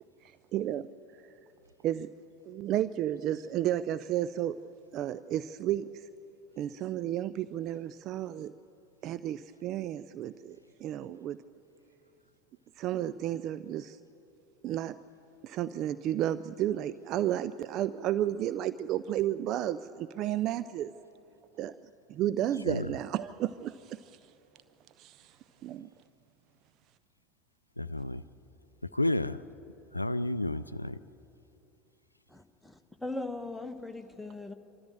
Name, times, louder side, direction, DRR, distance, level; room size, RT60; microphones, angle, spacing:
voice 1, 0.5-0.8 1.8-2.1 2.5-5.9 6.6-8.5 9.0-11.4 12.8-14.0 14.6-15.0 15.4-20.9 21.6-21.7 22.1-24.2 25.0-25.4 25.6-25.9, right 12 dB, 45° right, 0.4 m, -32 dB
voice 2, 27.8-28.2 28.8-29.4 29.9-31.0, left 1 dB, 90° left, 0.4 m, -31 dB
voice 3, 32.3-34.5, left 2 dB, 5° left, 1.3 m, -39 dB
25.5 x 13.5 x 7.7 m
figure-of-eight pair, 80°, 0 cm